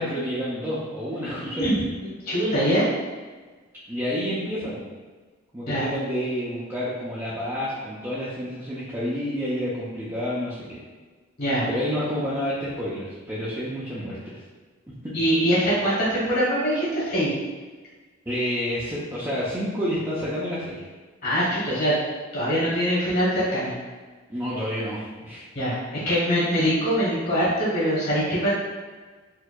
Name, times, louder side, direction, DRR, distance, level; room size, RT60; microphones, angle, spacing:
voice 1, 0.0-1.7 3.9-4.8 5.5-10.8 11.7-14.4 14.9-15.1 18.3-20.8 24.3-25.4, equal, 15° right, -10 dB, 0.5 m, -29 dB
voice 2, 2.3-2.9 5.7-5.9 11.4-11.7 15.1-17.3 21.2-22.0 22.3-23.7 25.5-28.5, equal, 55° left, -9 dB, 1.5 m, -23 dB
4.5 x 2.6 x 2.2 m, 1.4 s
head